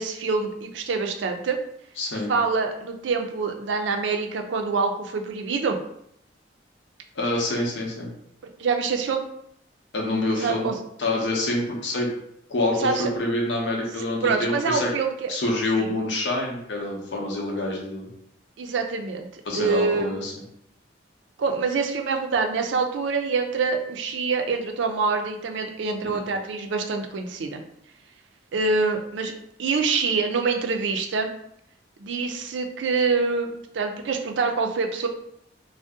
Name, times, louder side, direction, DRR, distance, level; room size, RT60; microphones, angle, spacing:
voice 1, 0.0-1.6 2.1-5.8 8.6-9.3 10.4-10.8 12.8-13.1 14.2-15.3 15.8-15.9 18.6-20.2 21.4-27.6 28.5-29.3 29.6-31.3 32.0-35.1, right 4 dB, 75° right, 4 dB, 0.4 m, -25 dB
voice 2, 2.0-2.3 7.1-8.1 9.9-10.7 11.0-12.1 12.5-14.9 15.3-18.1 19.5-20.3 26.0-26.2, left 2 dB, 70° left, -1 dB, 0.7 m, -26 dB
2.6 x 2.1 x 3.5 m, 0.75 s
head